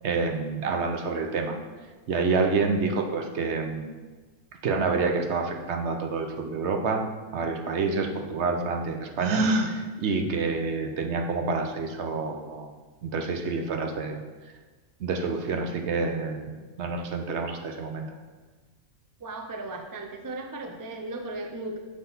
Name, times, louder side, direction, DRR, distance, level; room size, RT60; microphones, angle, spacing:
voice 1, 0.0-1.6 2.1-3.9 4.6-7.0 7.3-12.7 13.0-14.2 15.0-18.1, right 4 dB, 65° right, 4 dB, 0.9 m, -28 dB
Gasp, 9.2-9.7, right 2 dB, 85° right, 1.1 m, -25 dB
voice 2, 19.2-21.8, right 2 dB, 35° right, 3 dB, 0.3 m, -36 dB
6.1 x 5.5 x 3.9 m, 1.3 s
omnidirectional pair, 1.4 m